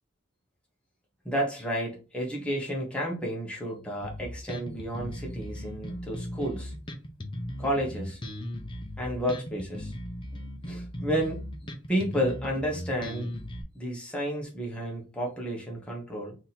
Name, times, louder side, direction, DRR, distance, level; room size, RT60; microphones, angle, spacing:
voice 1, 1.2-6.7 7.6-8.2 9.0-9.9 10.6-11.4 11.9-13.3 13.7-16.3, equal, 5° left, 1.0 m, -31 dB
Bass guitar, 4.0-13.6, equal, 25° left, 0.6 m, -37 dB
3.5 x 2.8 x 4.1 m
head